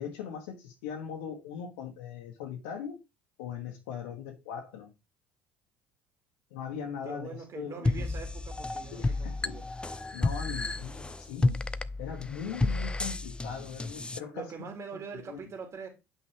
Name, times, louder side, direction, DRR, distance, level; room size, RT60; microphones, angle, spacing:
voice 1, 0.0-3.0 3.4-4.9 6.5-8.1 8.9-9.6 10.1-11.6 12.0-14.5 14.9-15.4, left 7 dB, 75° left, 1.5 m, -40 dB
voice 2, 7.0-9.7 14.3-15.9, right 5 dB, 45° right, 2.5 m, -43 dB
sound 1, 7.9-14.2, left 2 dB, 15° left, 0.6 m, -31 dB
9.6 x 5.8 x 3.5 m
hypercardioid pair, 65°, 7 cm